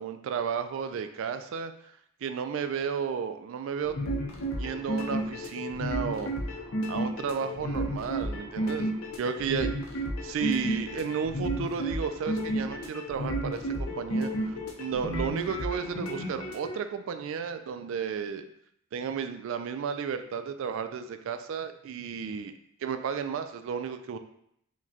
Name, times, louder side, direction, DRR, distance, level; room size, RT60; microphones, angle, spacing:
voice 1, 0.0-1.7 2.2-4.0 4.6-6.3 6.9-9.7 10.2-18.5 18.9-22.5 22.8-24.2, right 6 dB, 65° right, 9 dB, 0.3 m, -33 dB
sound 1, 3.8-16.7, right 1 dB, 85° left, 0.6 m, -32 dB
4.7 x 2.2 x 2.7 m, 0.71 s
head